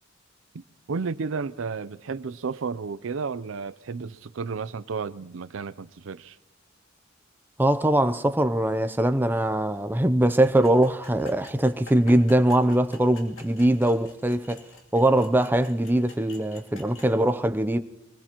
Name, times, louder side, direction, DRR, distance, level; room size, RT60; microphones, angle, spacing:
voice 1, 0.5-6.4, right 5 dB, 70° right, 0.5 m, -32 dB
voice 2, 7.6-14.6 14.9-17.8, right 1 dB, 10° right, 0.5 m, -22 dB
sound 1, 10.4-17.1, left 3 dB, 80° left, 2.7 m, -49 dB
24.0 x 20.5 x 3.0 m
head